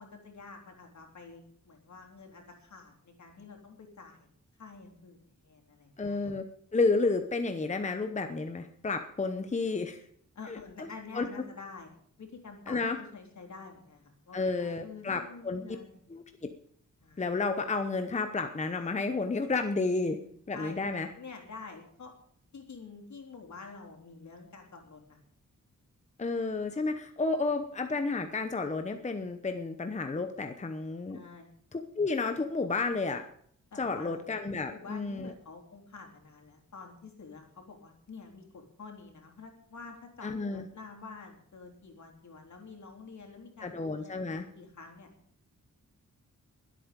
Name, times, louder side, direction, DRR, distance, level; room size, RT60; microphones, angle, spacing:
voice 1, 0.0-4.3 4.6-6.3 10.3-11.9 12.2-16.2 17.0-17.3 20.5-20.8 21.1-22.1 22.5-25.2 31.1-31.5 33.7-34.2 34.7-45.1, left 4 dB, 65° left, 2 dB, 3.5 m, -48 dB
voice 2, 6.0-6.4 6.7-10.0 10.5-10.9 11.1-11.3 12.7-13.0 14.3-15.6 16.1-16.2 17.2-20.2 20.5-21.1 26.2-31.2 31.7-33.2 33.8-35.3 40.2-40.6 43.6-44.5, left 3 dB, 25° left, 7 dB, 0.9 m, -31 dB
22.0 x 8.6 x 5.2 m, 0.63 s
wide cardioid pair, 180°, 31 cm